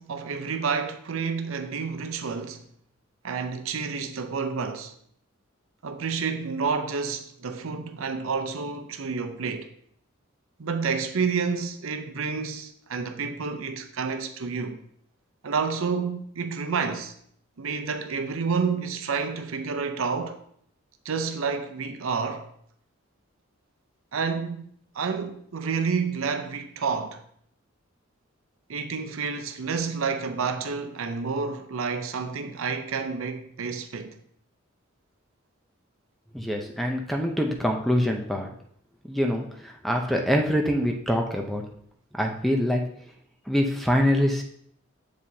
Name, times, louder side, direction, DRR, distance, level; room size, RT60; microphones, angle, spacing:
voice 1, 0.0-2.6 3.2-4.9 5.8-9.7 10.6-14.8 15.4-17.1 17.6-20.4 21.0-22.5 24.1-27.2 28.7-34.2, right 5 dB, 75° right, 0.6 m, -29 dB
voice 2, 36.3-38.5 39.1-41.6 42.2-42.8 43.5-44.4, equal, ahead, 0.6 m, -24 dB
7.2 x 4.8 x 2.7 m
head